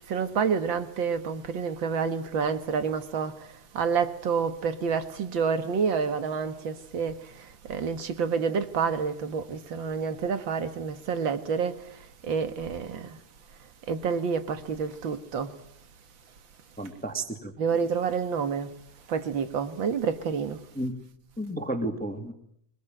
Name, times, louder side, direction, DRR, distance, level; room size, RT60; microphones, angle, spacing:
voice 1, 0.1-3.5 3.7-11.7 12.2-13.2 13.9-15.5 17.6-18.7 19.1-20.6, right 6 dB, 45° right, 2.0 m, -28 dB
voice 2, 16.8-17.5 20.8-20.9 21.4-22.3, right 1 dB, 5° left, 1.9 m, -32 dB
24.5 x 21.5 x 9.1 m
omnidirectional pair, 3.3 m